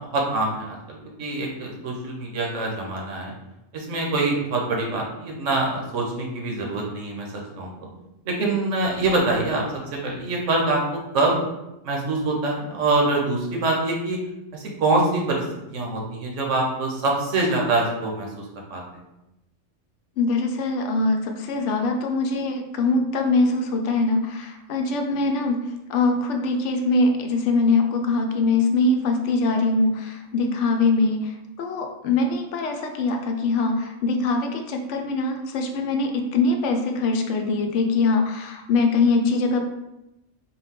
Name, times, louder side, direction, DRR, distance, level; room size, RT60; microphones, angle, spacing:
voice 1, 0.0-3.3 3.7-7.9 8.2-9.6 10.0-10.8 11.1-11.4 11.8-14.2 14.5-18.4 18.7-19.0, right 2 dB, 80° right, -1 dB, 1.2 m, -25 dB
voice 2, 20.2-25.6 25.9-39.6, left 3 dB, 75° left, 4 dB, 0.9 m, -22 dB
3.9 x 2.3 x 3.6 m, 0.92 s
omnidirectional pair, 1.3 m